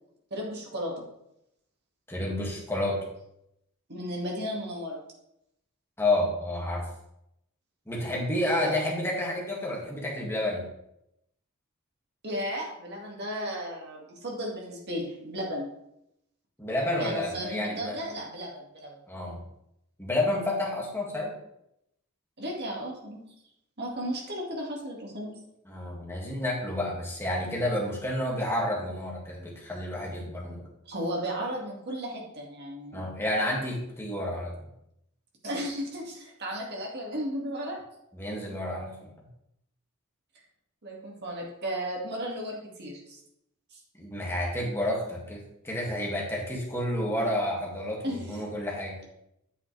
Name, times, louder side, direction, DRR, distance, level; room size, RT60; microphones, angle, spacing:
voice 1, 0.3-1.1 3.9-5.0 8.4-8.8 12.2-15.7 17.0-19.0 22.4-23.2 23.8-25.4 30.9-33.1 35.4-37.8 40.8-43.2 43.7-43.8 48.0-48.5, equal, 50° right, -1 dB, 2.1 m, -34 dB
voice 2, 2.1-3.0 6.0-6.9 7.9-10.6 16.6-18.0 19.1-19.4 20.0-21.3 25.7-30.6 32.9-34.6 38.1-39.1 43.9-49.0, left 1 dB, 10° left, -3 dB, 2.1 m, -30 dB
8.6 x 7.6 x 3.3 m, 0.80 s
head